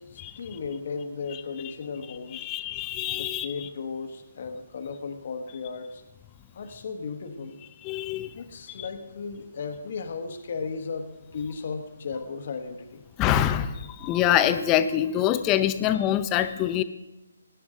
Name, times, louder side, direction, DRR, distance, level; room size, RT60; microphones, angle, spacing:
voice 1, 0.0-2.5 3.1-6.0 6.5-7.6 8.3-13.0, left 5 dB, 50° left, 6 dB, 1.3 m, -35 dB
voice 2, 2.3-3.7 7.8-8.4 8.8-8.9 13.2-16.8, left 11 dB, 20° left, 12 dB, 0.6 m, -25 dB
17.0 x 10.0 x 3.7 m, 0.98 s
figure-of-eight pair, 145°, 0 cm